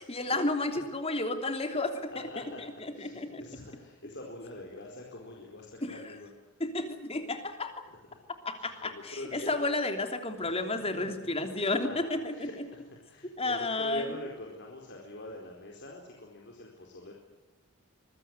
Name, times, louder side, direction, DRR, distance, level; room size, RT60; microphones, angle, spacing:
voice 1, 0.0-3.4 5.8-6.0 6.6-7.8 8.4-12.5 13.4-14.0, left 2 dB, 25° left, 6 dB, 3.2 m, -32 dB
voice 2, 2.1-2.6 2.9-6.3 7.9-8.2 8.5-9.5 10.4-10.6 11.2-11.5 11.8-17.1, left 1 dB, 50° left, 0 dB, 4.4 m, -44 dB
25.5 x 22.0 x 7.9 m, 1.0 s
head